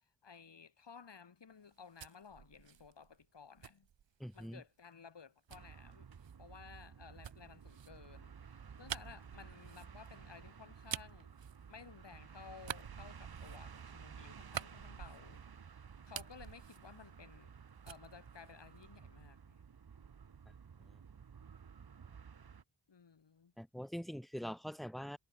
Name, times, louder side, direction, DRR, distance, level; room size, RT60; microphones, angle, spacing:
voice 1, 0.0-3.9 4.3-6.1 6.4-11.3 11.7-17.5 17.8-19.6 22.9-23.5, left 6 dB, 65° left, 8.0 m, -56 dB
sound 1, 1.6-4.6 5.5-12.2 12.6-15.6 15.9-17.6 17.8-19.2, right 9 dB, 70° right, 1.2 m, -49 dB
voice 2, 4.2-4.6 23.6-25.2, equal, ahead, 1.0 m, -43 dB
sound 2, 5.5-22.6, right 6 dB, 50° right, 1.8 m, -54 dB
wide cardioid pair, 120°, 46 cm